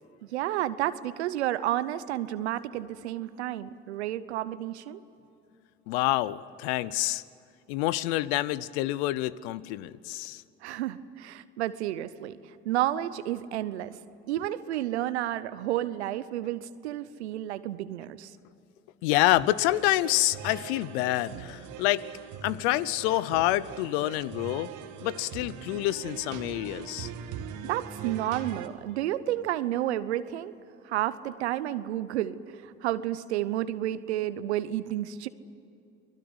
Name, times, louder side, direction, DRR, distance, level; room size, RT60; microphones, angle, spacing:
voice 1, 0.2-5.0 10.6-12.3 12.6-13.9 14.3-18.3 27.6-30.5 30.8-35.3, right 13 dB, 90° right, 15 dB, 0.8 m, -31 dB
voice 2, 5.9-7.2 7.7-10.4 19.0-22.0 22.4-24.7 25.0-27.1, left 16 dB, 80° left, 19 dB, 0.8 m, -27 dB
sound 1, 19.3-28.7, right 8 dB, 65° right, 1.8 m, -41 dB
29.0 x 20.5 x 8.1 m, 2.8 s
hypercardioid pair, 55°, 32 cm